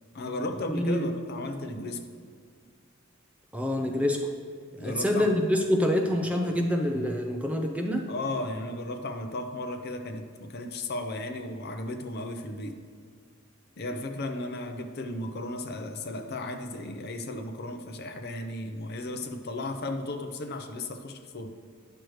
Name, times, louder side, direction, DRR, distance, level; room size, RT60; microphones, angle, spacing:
voice 1, 0.1-2.0 4.8-5.3 8.1-12.8 13.8-21.5, left 2 dB, 45° left, 5 dB, 0.6 m, -35 dB
voice 2, 0.7-1.1 3.5-4.3 4.8-8.0, left 1 dB, 5° right, 2 dB, 0.5 m, -26 dB
10.5 x 6.3 x 3.1 m, 2.1 s
head